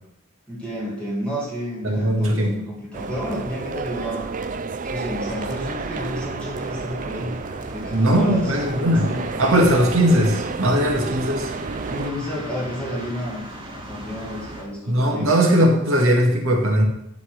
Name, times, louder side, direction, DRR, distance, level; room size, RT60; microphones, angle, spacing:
voice 1, 0.5-4.3 4.8-7.4 7.7-9.3 11.9-13.5 13.7-15.3, equal, 5° left, -6 dB, 2.1 m, -31 dB
voice 2, 1.8-2.5 7.9-9.1 9.4-11.5 14.9-16.9, equal, 75° right, 1 dB, 1.9 m, -19 dB
sound 1, 2.9-12.1, right 4 dB, 40° right, 0.5 m, -31 dB
sound 2, 5.2-14.6, right 1 dB, 25° right, 2.0 m, -39 dB
11.0 x 4.2 x 6.5 m, 0.81 s
head